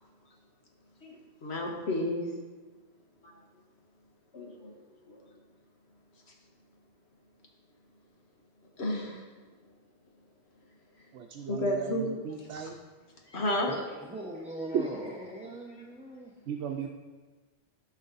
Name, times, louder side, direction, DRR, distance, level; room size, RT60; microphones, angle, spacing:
voice 1, 1.0-2.2 3.2-3.4 4.3-4.7 5.1-5.2 8.8-9.2 11.5-12.1 13.3-13.7, left 1 dB, 70° left, 0 dB, 1.7 m, -32 dB
voice 2, 11.1-12.8 14.7-14.8 16.5-16.9, right 8 dB, 85° right, 2 dB, 0.9 m, -35 dB
voice 3, 13.7-16.3, right 1 dB, 10° right, -2 dB, 0.6 m, -40 dB
13.0 x 5.3 x 4.0 m, 1.3 s
omnidirectional pair, 1.1 m